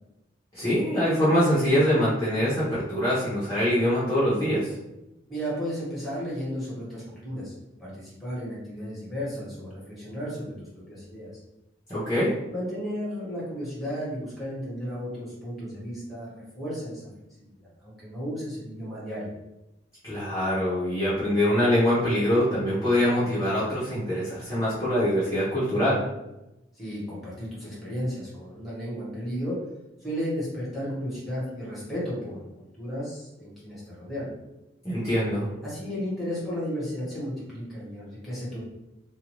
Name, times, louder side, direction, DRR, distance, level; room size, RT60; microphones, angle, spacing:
voice 1, 0.5-4.8 11.9-12.3 20.0-26.0 34.8-35.5, equal, 20° left, -12 dB, 0.9 m, -24 dB
voice 2, 5.3-7.5 7.8-11.3 12.5-17.1 17.4-19.3 26.7-29.6 30.0-34.3 35.6-38.6, equal, ahead, -8 dB, 1.3 m, -34 dB
2.5 x 2.3 x 3.0 m, 0.94 s
head